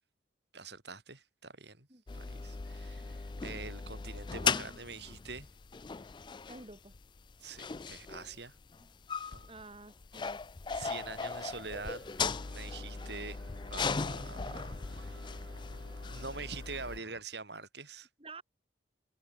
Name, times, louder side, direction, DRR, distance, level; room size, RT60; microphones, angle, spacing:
voice 1, 0.5-1.9 2.1-5.5 7.4-8.5 9.3-9.5 10.7-12.0 12.5-13.4 13.7-15.4 16.0-18.1, right 4 dB, 60° right, 5.4 m, -45 dB
sound 1, 2.1-17.0, left 5 dB, 25° left, 0.3 m, -38 dB
voice 2, 6.5-6.9 8.8-8.9 9.5-10.4 18.2-18.4, right 3 dB, 30° right, 3.4 m, -50 dB
sound 2, 10.9-17.2, right 2 dB, 80° right, 3.3 m, -56 dB
head